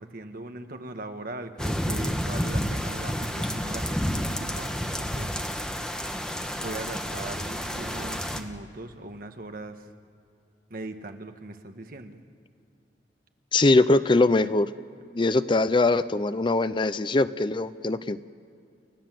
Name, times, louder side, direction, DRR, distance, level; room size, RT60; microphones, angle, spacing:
voice 1, 0.0-5.3 6.6-9.8 10.7-12.2, right 2 dB, 55° right, 6 dB, 1.3 m, -40 dB
sound 1, 1.6-8.4, equal, 5° left, 1.1 m, -30 dB
voice 2, 13.5-14.7 15.1-18.3, left 2 dB, 30° left, 14 dB, 0.5 m, -22 dB
29.5 x 14.0 x 7.6 m, 2.5 s
head